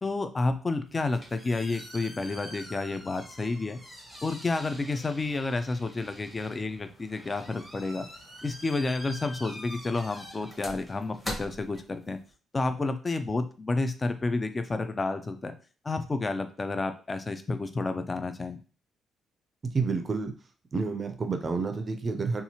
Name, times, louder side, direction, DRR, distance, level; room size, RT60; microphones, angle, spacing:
voice 1, 0.0-3.8 4.2-8.1 8.4-12.2 12.5-15.5 15.8-18.6, left 3 dB, 25° left, 9 dB, 0.3 m, -30 dB
sound 1, 0.9-12.3, equal, 5° left, 0.9 m, -45 dB
voice 2, 19.6-20.3 20.7-22.4, right 4 dB, 35° right, 6 dB, 0.4 m, -29 dB
2.8 x 2.3 x 2.8 m, 0.36 s
cardioid pair, 90°, 0 cm